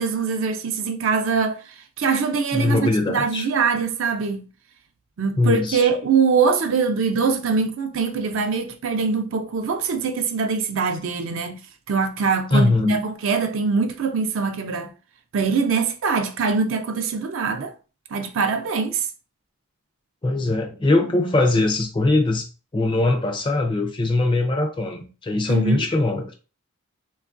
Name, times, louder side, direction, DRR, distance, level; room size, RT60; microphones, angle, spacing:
voice 1, 0.0-2.8 3.1-4.4 5.2-11.6 11.9-14.9 15.3-17.7 18.1-19.1 25.5-25.8, right 5 dB, 60° right, 0.4 m, -23 dB
voice 2, 2.5-3.5 5.4-5.9 12.5-13.0 20.2-22.5 22.7-26.3, left 2 dB, 20° left, 0.3 m, -21 dB
2.9 x 2.3 x 2.5 m
head